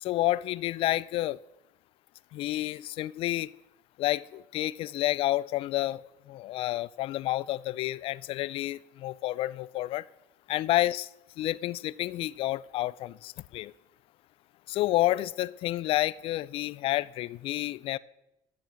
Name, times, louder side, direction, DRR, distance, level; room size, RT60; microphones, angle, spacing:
voice 1, 0.0-1.4 2.3-3.5 4.0-6.0 6.3-10.0 10.5-11.1 11.4-13.7 14.7-18.0, left 16 dB, 55° left, 0.4 m, -29 dB
12.0 x 7.1 x 6.2 m
supercardioid pair, 105°, 11 cm